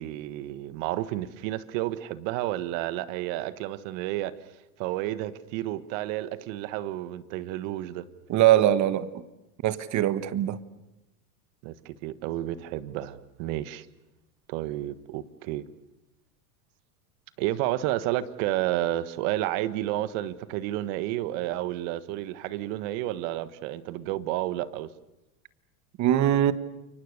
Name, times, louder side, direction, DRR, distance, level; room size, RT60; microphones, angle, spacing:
voice 1, 0.0-4.4 4.8-8.1 11.6-13.9 14.5-15.6 17.4-24.9, right 14 dB, 55° right, 1.5 m, -31 dB
voice 2, 8.3-9.1 9.6-10.6 26.0-26.5, right 12 dB, 40° right, 1.5 m, -22 dB
29.5 x 24.0 x 6.7 m
supercardioid pair, 115°, 46 cm